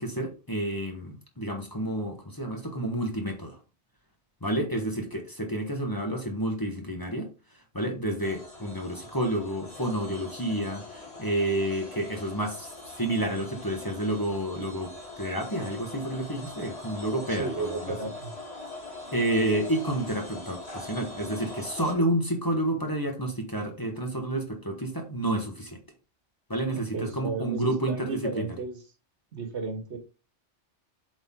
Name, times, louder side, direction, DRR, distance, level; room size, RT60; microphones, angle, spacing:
voice 1, 0.0-3.6 4.4-7.3 7.7-18.0 19.1-25.8 26.5-28.5, right 1 dB, 20° left, 2 dB, 1.3 m, -30 dB
sound 1, 8.2-21.9, left 2 dB, 60° left, 2.6 m, -42 dB
voice 2, 17.3-18.3 26.7-28.8 29.3-30.0, right 4 dB, 75° right, 6 dB, 1.7 m, -34 dB
7.8 x 4.4 x 3.7 m, 0.32 s
omnidirectional pair, 1.2 m